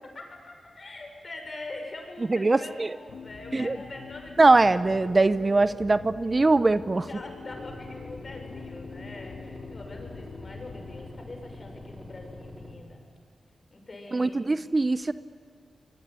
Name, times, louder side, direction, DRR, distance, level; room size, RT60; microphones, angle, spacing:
voice 1, 0.1-4.7 7.1-13.0 13.7-14.5, left 2 dB, 50° left, 3 dB, 6.6 m, -43 dB
voice 2, 2.3-2.9 3.5-3.8 4.4-7.1 14.1-15.1, right 3 dB, 40° right, 15 dB, 0.8 m, -22 dB
sound 1, 3.1-11.1, left 5 dB, 75° left, 2.0 m, -44 dB
sound 2, 7.5-12.7, left 2 dB, ahead, 5.4 m, -44 dB
26.0 x 21.5 x 9.6 m, 2.1 s
supercardioid pair, 40°, 0 cm